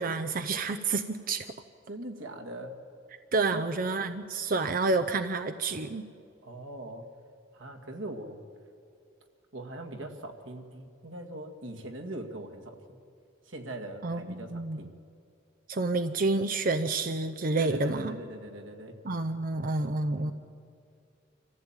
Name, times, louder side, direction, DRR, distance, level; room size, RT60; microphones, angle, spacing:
voice 1, 0.0-1.5 3.3-6.0 14.0-14.8 15.7-18.1 19.0-20.3, right 3 dB, 50° right, 8 dB, 0.7 m, -29 dB
voice 2, 1.9-2.8 3.5-3.6 6.4-7.1 7.5-8.4 9.5-13.0 13.4-14.9 17.6-19.0 20.1-20.3, right 1 dB, 90° right, 3 dB, 2.2 m, -41 dB
26.0 x 15.0 x 8.9 m, 2.5 s
head